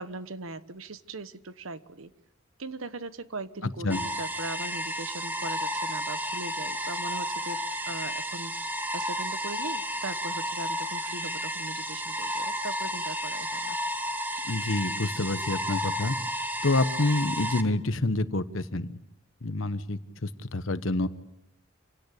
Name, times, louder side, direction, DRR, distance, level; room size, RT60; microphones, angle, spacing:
voice 1, 0.0-2.1 2.6-7.6 7.9-8.5 8.9-13.8, right 2 dB, 85° right, 13 dB, 1.2 m, -39 dB
sound 1, 3.9-17.6, equal, 10° right, 1.5 m, -32 dB
voice 2, 14.5-16.1 16.6-18.9 19.4-21.1, left 2 dB, 75° left, 12 dB, 1.2 m, -27 dB
27.0 x 17.5 x 8.4 m, 0.84 s
head